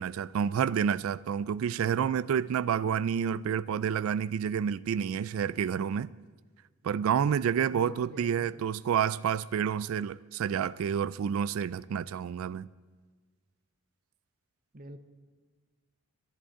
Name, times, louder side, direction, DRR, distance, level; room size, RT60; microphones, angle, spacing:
voice 1, 0.0-6.1 6.8-12.7, right 8 dB, 70° right, 0.3 m, -29 dB
voice 2, 7.7-8.7 14.7-15.0, right 1 dB, 40° right, 0.8 m, -47 dB
11.0 x 11.0 x 8.6 m
head